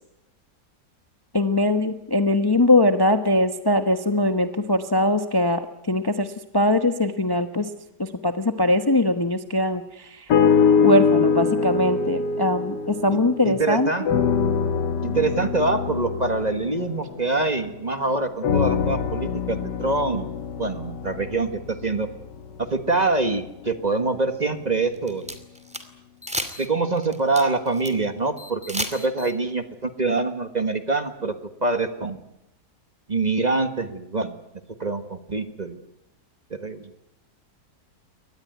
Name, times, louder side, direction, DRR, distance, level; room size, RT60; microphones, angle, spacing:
voice 1, 1.3-7.7 8.0-10.3 10.8-13.9, left 1 dB, 15° left, 8 dB, 1.0 m, -21 dB
sound 1, 10.3-13.7 14.1-17.8 18.4-22.6 23.3-23.4, left 6 dB, 85° left, 1.8 m, -23 dB
voice 2, 13.4-14.1 15.0-22.1 22.6-25.4 26.6-31.3 31.6-32.2 33.1-34.4 34.8-35.8 36.5-36.9, right 3 dB, 25° right, 9 dB, 1.4 m, -25 dB
sound 2, 24.8-25.8 26.2-26.7 27.0-27.9 28.4-29.3, equal, 5° right, 2.1 m, -32 dB
23.0 x 19.5 x 9.3 m, 0.85 s
omnidirectional pair, 1.8 m